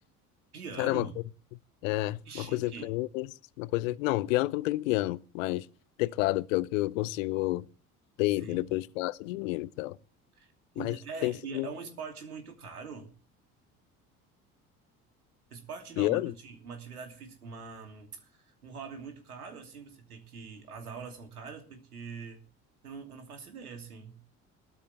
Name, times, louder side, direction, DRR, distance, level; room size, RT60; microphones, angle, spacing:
voice 1, 0.5-1.2 2.2-3.0 8.4-8.7 10.4-13.1 15.5-22.4 22.8-24.2, right 5 dB, 80° right, 2.8 m, -43 dB
voice 2, 1.8-3.3 3.6-5.7 6.0-7.6 8.2-10.0 10.8-11.0 11.2-11.7 16.0-16.3, left 19 dB, 60° left, 0.8 m, -29 dB
19.0 x 13.0 x 3.3 m
figure-of-eight pair, 60°, 44 cm